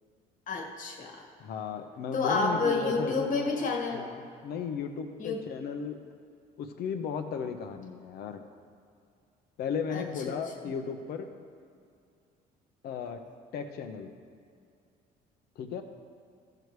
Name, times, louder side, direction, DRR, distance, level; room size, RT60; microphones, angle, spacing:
voice 1, 0.5-1.2 2.1-4.1 5.2-5.4 9.9-10.4 10.6-10.7, left 3 dB, 50° left, 1 dB, 1.5 m, -30 dB
voice 2, 1.4-3.6 3.9-6.0 6.6-8.4 9.6-11.3 12.8-13.2 13.5-14.1 15.6-15.8, left 6 dB, 70° left, 6 dB, 0.9 m, -35 dB
14.5 x 6.9 x 3.2 m, 2.4 s
cardioid pair, 110°, 17 cm